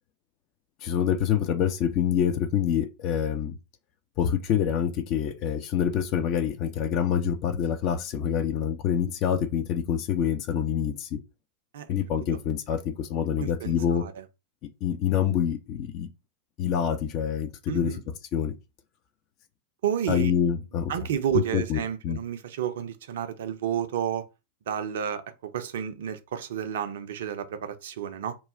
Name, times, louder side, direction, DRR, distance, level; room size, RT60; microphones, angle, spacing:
voice 1, 0.8-3.6 4.2-11.2 11.9-14.0 14.8-16.1 16.6-18.0 18.3-18.5 20.1-20.9 21.3-22.2, left 9 dB, 40° left, 0.5 m, -26 dB
voice 2, 13.4-14.1 17.7-18.0 19.8-20.3 20.9-24.2 24.7-28.4, right 9 dB, 60° right, 0.4 m, -31 dB
3.1 x 2.3 x 3.7 m
figure-of-eight pair, 90°, 0 cm